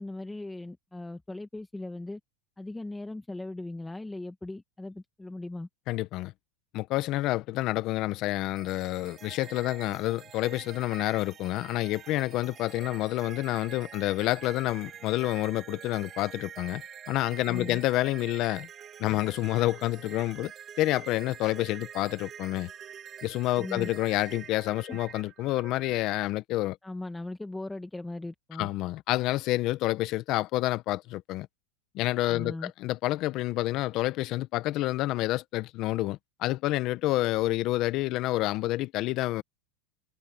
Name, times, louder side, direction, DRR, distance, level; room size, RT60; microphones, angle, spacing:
voice 1, 0.0-2.2 2.6-5.7 17.5-17.8 23.6-23.9 24.9-25.0 26.8-28.7 32.3-32.7, left 2 dB, 5° left, 1.2 m, -38 dB
voice 2, 5.9-6.3 6.7-16.8 17.1-18.7 19.0-20.5 20.8-22.7 23.2-26.8 28.6-31.5 31.9-39.4, left 17 dB, 40° left, 0.9 m, -28 dB
sound 1, 8.6-26.2, right 8 dB, 25° right, 1.4 m, -46 dB
supercardioid pair, 150°, 0 cm